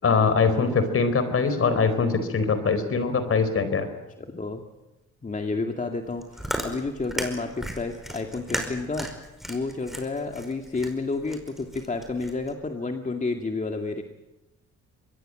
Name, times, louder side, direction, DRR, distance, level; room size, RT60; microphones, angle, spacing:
voice 1, 0.0-3.9, left 5 dB, 50° left, 11 dB, 4.3 m, -22 dB
voice 2, 4.2-4.6 5.2-9.1 9.5-14.0, left 3 dB, 25° left, 3 dB, 2.3 m, -30 dB
Chewing mastication, 6.0-12.5, equal, ahead, 5.1 m, -35 dB
25.0 x 21.0 x 7.8 m, 1.0 s
cardioid pair, 90°, 30 cm